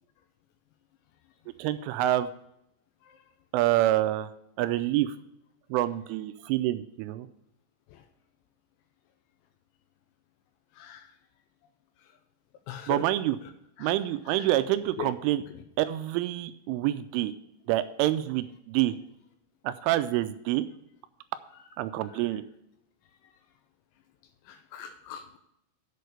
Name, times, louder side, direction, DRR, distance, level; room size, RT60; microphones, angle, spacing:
voice 1, 1.6-2.3 3.5-4.3 4.6-5.2 5.7-7.3 12.9-13.4 13.8-15.4 15.8-17.3 17.7-18.9 19.6-20.7 21.8-22.4, right 14 dB, 85° right, 12 dB, 2.9 m, -27 dB
voice 2, 12.7-13.0 13.8-13.9 14.3-14.5 15.0-15.1 24.5-25.4, left 10 dB, 85° left, 8 dB, 2.8 m, -39 dB
8.4 x 6.5 x 6.6 m, 0.80 s
omnidirectional pair, 5.9 m